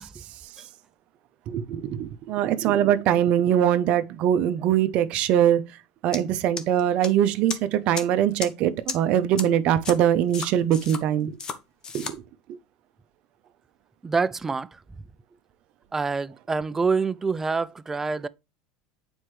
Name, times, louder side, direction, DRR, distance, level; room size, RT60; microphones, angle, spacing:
voice 1, 1.5-5.6 6.0-11.4 11.9-12.2, right 10 dB, 55° right, 0.8 m, -22 dB
sound 1, 6.1-6.2 6.6-7.1 7.5-7.6 7.9-8.0 8.4-8.5 8.9-9.0 9.4-9.5 9.8-9.9 10.3-11.0 11.4-11.6 11.8-12.1, left 5 dB, 30° left, 1.0 m, -32 dB
voice 2, 14.0-14.8 15.9-18.3, right 4 dB, 15° right, 0.4 m, -26 dB
7.9 x 4.4 x 3.2 m
supercardioid pair, 120°, 2 cm